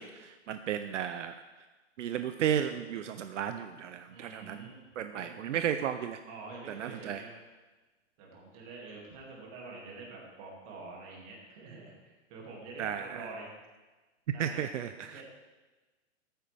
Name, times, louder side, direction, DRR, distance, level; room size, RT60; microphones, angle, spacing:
voice 1, 0.0-1.4 2.0-4.7 5.0-6.2 6.7-7.2 12.8-13.2 14.4-15.2, right 9 dB, 70° right, 9 dB, 0.6 m, -34 dB
voice 2, 4.1-4.9 5.1-5.3 6.3-7.3 8.2-13.5 14.3-14.6 15.0-15.2, right 3 dB, 25° right, -2 dB, 2.3 m, -46 dB
14.0 x 9.0 x 3.4 m, 1.2 s
hypercardioid pair, 170°, 38 cm